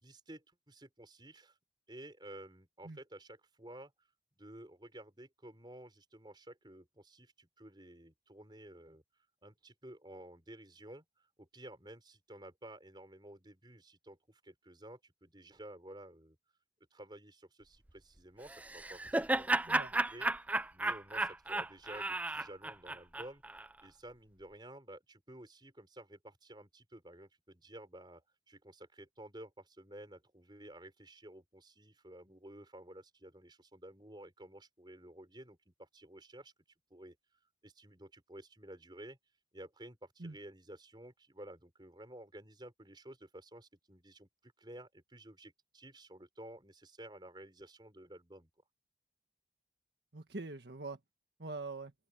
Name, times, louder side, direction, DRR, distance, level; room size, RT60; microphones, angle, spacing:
voice 1, 0.0-1.6 1.9-3.9 4.4-9.0 9.4-16.4 16.9-20.3 20.7-23.4 23.8-36.5 36.9-37.2 37.6-39.2 39.5-48.5, right 1 dB, 25° right, 5.4 m, -53 dB
Laughter, 18.5-23.7, right 2 dB, 10° right, 0.4 m, -34 dB
voice 2, 19.6-20.0 40.2-40.4 50.1-51.0 51.4-51.9, right 3 dB, 70° right, 1.5 m, -43 dB
open air
head